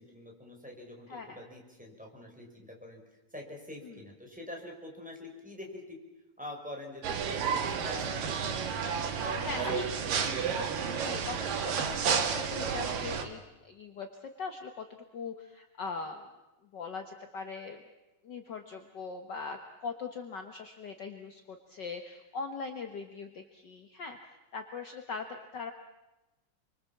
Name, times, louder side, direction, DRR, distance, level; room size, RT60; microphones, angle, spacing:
voice 1, 0.0-3.0 3.3-6.0 6.4-8.4 9.2-10.2, left 1 dB, ahead, -1 dB, 5.6 m, -44 dB
voice 2, 1.1-1.4 3.8-4.0 9.4-10.4 10.9-14.9 15.1-16.3 16.7-17.8 18.2-25.7, left 4 dB, 50° left, 5 dB, 1.3 m, -41 dB
sound 1, 7.0-13.2, right 6 dB, 80° right, 3.6 m, -31 dB
29.5 x 24.5 x 7.3 m, 1.0 s
omnidirectional pair, 3.8 m